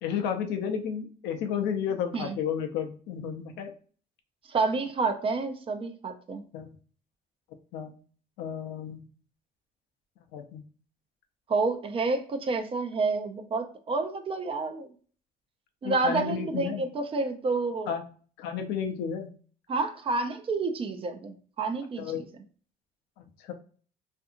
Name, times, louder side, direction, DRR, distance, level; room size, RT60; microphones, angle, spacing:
voice 1, 0.0-3.7 6.5-6.7 7.7-7.9 8.4-9.0 10.3-10.6 15.8-16.8 17.9-18.0 18.4-19.3 22.0-22.2 23.4-23.5, left 8 dB, 85° left, 5 dB, 0.5 m, -32 dB
voice 2, 4.5-6.4 11.5-14.9 15.8-17.9 19.7-22.2, right 3 dB, 35° right, 6 dB, 0.4 m, -29 dB
2.6 x 2.5 x 2.4 m, 0.43 s
cardioid pair, 110°, 17 cm